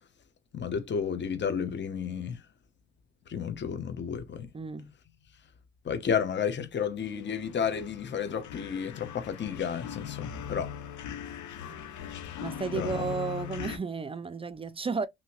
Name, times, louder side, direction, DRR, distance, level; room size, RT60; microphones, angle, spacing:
voice 1, 0.5-2.4 3.3-4.5 5.8-10.7 12.7-13.0, left 7 dB, 40° left, 0.8 m, -32 dB
voice 2, 4.5-4.9 11.7-11.8 12.4-15.1, right 5 dB, 20° right, 0.3 m, -33 dB
sound 1, 7.0-13.8, left 9 dB, 75° left, 0.8 m, -40 dB
2.7 x 2.7 x 2.9 m
cardioid pair, 90°, 30 cm